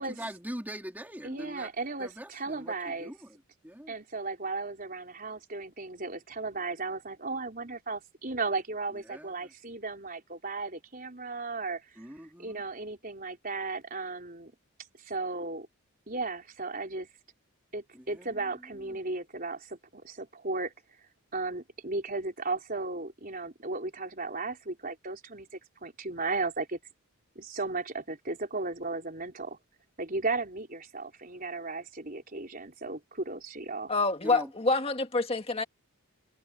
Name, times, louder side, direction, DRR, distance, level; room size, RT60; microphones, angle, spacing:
voice 1, 0.0-1.7 2.0-3.4 3.6-4.0 9.1-9.5 12.0-12.6 17.9-18.5 18.9-19.0 34.2-34.5, equal, 10° right, 3.3 m, -42 dB
voice 2, 1.2-3.1 3.9-11.8 12.4-14.5 15.0-15.7 16.1-17.1 17.7-20.7 21.3-25.5 25.8-26.8 27.3-29.6 30.0-33.9, right 3 dB, 40° right, 4.5 m, -35 dB
voice 3, 33.9-35.6, left 3 dB, 25° left, 1.8 m, -27 dB
head